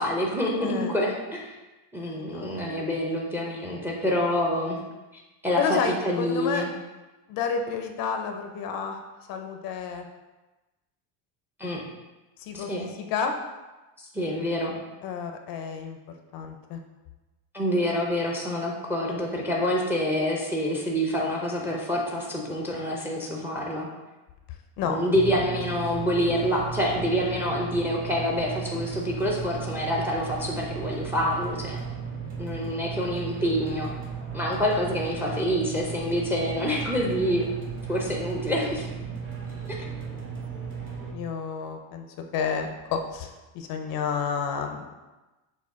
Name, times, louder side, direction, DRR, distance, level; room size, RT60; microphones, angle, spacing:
voice 1, 0.0-1.5 1.9-4.8 5.4-6.7 11.6-11.8 12.5-12.9 14.1-14.7 17.5-23.9 24.8-31.8 32.4-33.9 34.3-37.5 37.9-38.9, equal, 5° right, -1 dB, 0.5 m, -27 dB
voice 2, 2.2-2.5 5.6-6.6 7.3-9.0 9.3-10.1 12.4-13.3 15.0-16.0 16.3-16.8 24.8-25.0 41.1-44.9, left 6 dB, 50° left, 5 dB, 0.5 m, -30 dB
sound 1, 25.1-41.1, right 6 dB, 30° right, 0.9 m, -35 dB
6.2 x 2.3 x 3.5 m, 1.1 s
cardioid pair, 135°, 44 cm